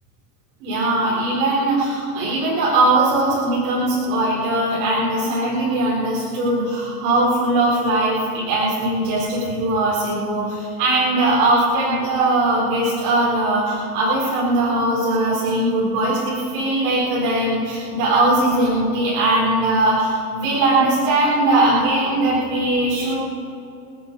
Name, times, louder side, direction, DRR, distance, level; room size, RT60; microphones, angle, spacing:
voice 1, 0.6-23.2, right 2 dB, 80° right, -6 dB, 4.4 m, -20 dB
28.0 x 9.5 x 4.7 m, 2.8 s
supercardioid pair, 120°, 45 cm